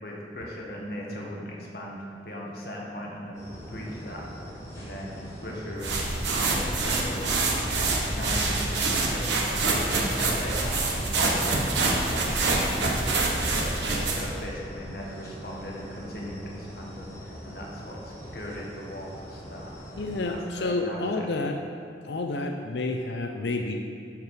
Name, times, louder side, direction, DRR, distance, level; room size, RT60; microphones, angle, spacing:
voice 1, 0.0-3.4 3.7-7.3 7.8-11.6 12.0-19.7 20.0-21.3, equal, 60° left, -3 dB, 1.7 m, -39 dB
sound 1, 3.3-20.4, equal, 15° left, 1.8 m, -41 dB
sound 2, 5.8-14.4, right 3 dB, 85° right, 1.3 m, -26 dB
voice 2, 20.0-21.6 22.0-23.9, left 2 dB, 80° left, 4 dB, 0.5 m, -29 dB
13.5 x 4.6 x 5.0 m, 2.4 s
head